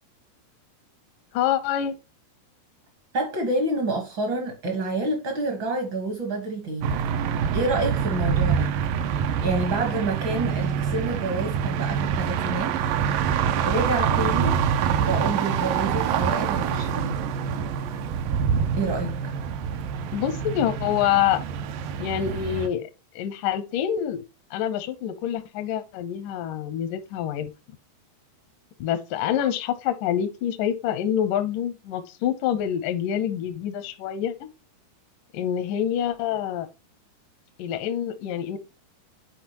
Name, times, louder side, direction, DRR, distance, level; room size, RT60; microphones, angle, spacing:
voice 1, 1.3-2.0 20.1-21.4 22.0-22.9 23.2-24.2 24.5-27.5 28.8-34.5 35.3-36.7 37.6-38.6, left 10 dB, 80° left, 1.9 m, -26 dB
voice 2, 3.1-7.0 7.5-8.7 9.4-12.7 13.6-14.6 15.0-17.2 18.7-19.3, right 2 dB, 65° right, 1.2 m, -28 dB
sound 1, 6.8-22.7, right 7 dB, 85° right, 1.9 m, -26 dB
10.0 x 4.6 x 3.0 m
omnidirectional pair, 4.8 m